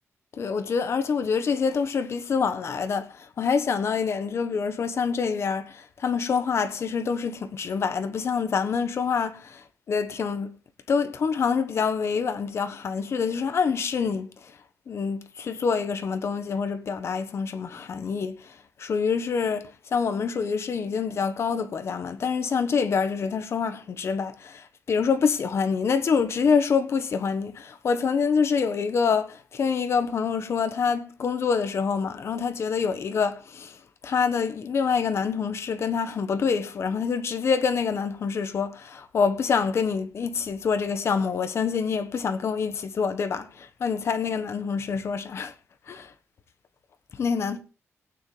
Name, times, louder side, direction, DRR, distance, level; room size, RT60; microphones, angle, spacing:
voice 1, 0.4-10.6 10.9-14.6 14.9-45.5 45.9-46.1 47.1-47.6, left 5 dB, 55° left, 1.2 m, -26 dB
17.0 x 9.2 x 3.3 m
wide cardioid pair, 135°, 5 cm